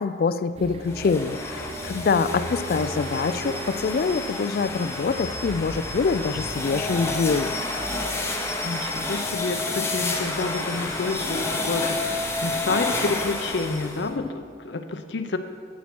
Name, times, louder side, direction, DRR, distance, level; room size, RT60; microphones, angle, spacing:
voice 1, 0.0-7.6, left 5 dB, 55° left, 14 dB, 0.3 m, -25 dB
sound 1, 0.6-14.3, right 1 dB, 35° right, 0.5 m, -40 dB
sound 2, 0.9-14.1, left 2 dB, 15° left, 0.8 m, -30 dB
voice 2, 8.6-15.4, left 3 dB, 90° left, 8 dB, 0.7 m, -29 dB
8.5 x 7.2 x 6.1 m, 2.2 s
head